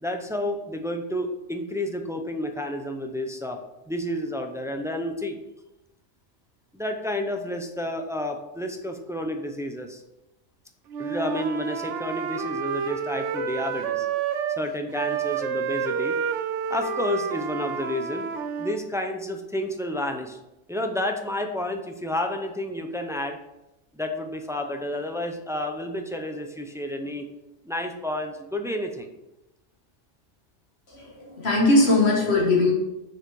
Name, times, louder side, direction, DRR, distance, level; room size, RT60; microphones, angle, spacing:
voice 1, 0.0-3.6 3.9-5.4 6.7-10.0 11.0-14.1 14.6-16.2 16.7-18.3 18.6-20.4 20.7-23.4 23.9-27.3 27.6-29.1, left 1 dB, 5° right, 4 dB, 0.4 m, -30 dB
Wind instrument woodwind instrument, 10.9-14.6 14.9-18.8, right 7 dB, 75° right, 1.0 m, -29 dB
voice 2, 30.9-32.7, left 2 dB, 55° left, -2 dB, 1.7 m, -20 dB
6.3 x 4.9 x 4.7 m, 0.94 s
omnidirectional pair, 1.3 m